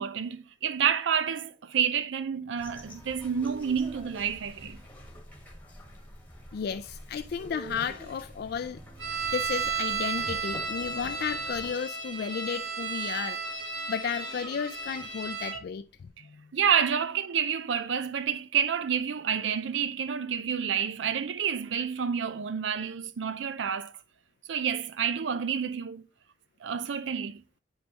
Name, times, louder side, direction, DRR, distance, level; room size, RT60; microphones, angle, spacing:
voice 1, 0.0-4.8 16.5-23.9 24.5-26.0 26.6-27.4, right 7 dB, 85° right, 0.5 m, -29 dB
sound 1, 2.6-11.7, equal, 10° left, 1.4 m, -47 dB
sound 2, 3.4-4.8 7.4-8.5, right 2 dB, 40° right, 2.7 m, -48 dB
voice 2, 6.5-8.8 9.3-16.5, left 7 dB, 60° left, 0.3 m, -34 dB
sound 3, 9.0-15.6, right 5 dB, 70° right, 2.5 m, -33 dB
8.0 x 5.4 x 2.9 m
head